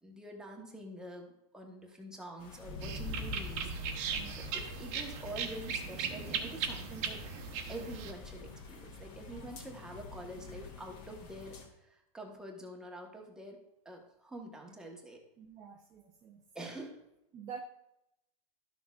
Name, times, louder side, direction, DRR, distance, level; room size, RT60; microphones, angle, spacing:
voice 1, 0.0-7.2 7.7-13.6 13.8-15.2 16.5-17.0, right 1 dB, 5° right, 0 dB, 1.1 m, -46 dB
sound 1, 2.4-11.7, left 3 dB, 40° left, 1.6 m, -47 dB
sound 2, 2.8-8.1, right 6 dB, 40° right, 1.0 m, -38 dB
voice 2, 4.1-4.6 9.4-9.5 15.4-16.4 17.3-17.6, right 7 dB, 20° right, 2 dB, 0.5 m, -48 dB
12.5 x 6.3 x 2.4 m, 0.86 s
hypercardioid pair, 140°, 19 cm